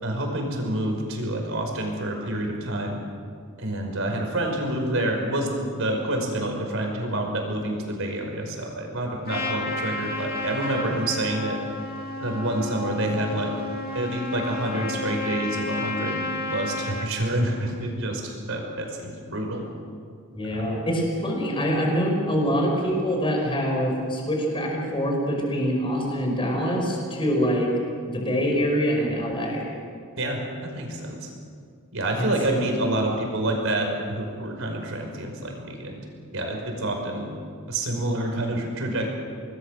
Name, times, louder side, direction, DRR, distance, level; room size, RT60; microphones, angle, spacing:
voice 1, 0.0-3.0 3.6-11.6 12.2-13.5 13.9-19.6 20.5-20.7 30.2-31.3 31.9-36.0 36.3-37.3 37.7-39.1, right 1 dB, 65° right, 2 dB, 5.4 m, -28 dB
Trumpet, 9.3-17.1, left 2 dB, 45° left, 2.3 m, -32 dB
voice 2, 20.3-27.7 28.1-29.7 32.2-32.3, equal, 25° left, 0 dB, 5.4 m, -25 dB
26.0 x 20.0 x 6.7 m, 2.2 s
head